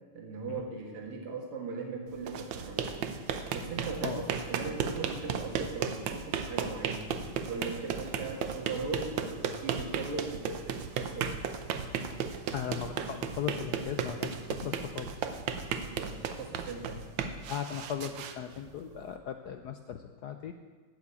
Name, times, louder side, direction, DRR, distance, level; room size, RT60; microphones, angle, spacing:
voice 1, 0.1-3.0 3.5-7.1 7.5-11.3 15.8-17.1, right 4 dB, 85° right, 2 dB, 2.6 m, -39 dB
sound 1, 2.1-19.1, right 7 dB, 70° right, 1.5 m, -35 dB
voice 2, 12.5-15.3 17.5-20.5, left 9 dB, 75° left, 7 dB, 0.9 m, -38 dB
13.0 x 6.2 x 8.4 m, 1.4 s
omnidirectional pair, 2.4 m